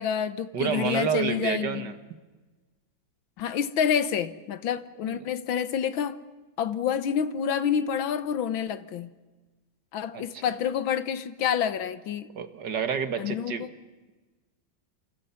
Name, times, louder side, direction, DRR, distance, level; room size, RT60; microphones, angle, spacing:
voice 1, 0.0-1.9 3.4-6.2 6.6-9.1 9.9-12.3 13.2-13.7, left 8 dB, 80° left, 1.9 m, -28 dB
voice 2, 0.5-1.9 5.1-5.3 10.1-10.4 12.4-13.7, right 7 dB, 60° right, 2.0 m, -29 dB
29.0 x 28.0 x 5.8 m
omnidirectional pair, 2.1 m